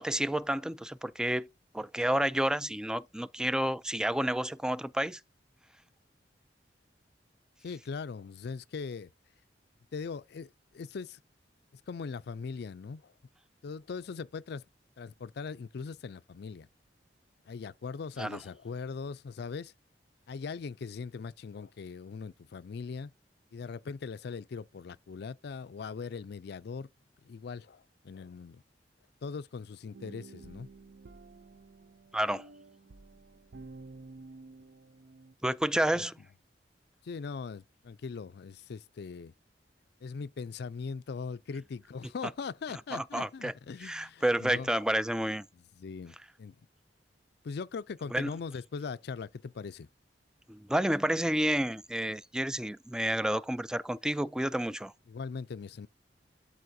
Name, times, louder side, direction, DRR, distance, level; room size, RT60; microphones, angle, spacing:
voice 1, 0.0-1.5 1.7-5.2 18.2-18.4 32.1-32.5 35.4-36.2 42.9-43.5 43.8-45.5 48.1-48.3 50.5-54.9, right 1 dB, 5° right, 0.3 m, -30 dB
voice 2, 7.6-9.1 9.9-11.2 11.7-13.1 13.6-14.6 15.0-16.7 17.5-19.7 20.3-23.1 23.5-26.9 27.2-28.6 29.2-30.7 35.9-36.1 37.0-39.3 40.0-44.7 45.5-46.7 47.4-49.9 55.1-55.9, left 5 dB, 65° left, 0.4 m, -40 dB
Mio's Dream, 29.9-35.3, right 3 dB, 60° right, 0.5 m, -51 dB
12.5 x 4.2 x 2.7 m
head